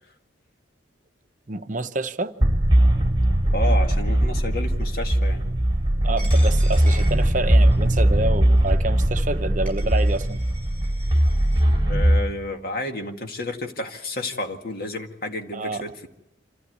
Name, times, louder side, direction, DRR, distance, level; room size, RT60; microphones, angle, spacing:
voice 1, 1.5-2.6 6.0-10.4 15.5-15.8, right 2 dB, 40° right, 0.8 m, -28 dB
sound 1, 2.4-12.2, right 1 dB, 25° right, 2.1 m, -20 dB
voice 2, 3.5-5.4 11.7-16.1, left 1 dB, 50° left, 2.0 m, -31 dB
Coin (dropping), 6.2-7.9 8.6-8.7 9.4-9.5 9.7-11.6, right 1 dB, 5° left, 7.4 m, -43 dB
26.0 x 15.0 x 9.5 m
head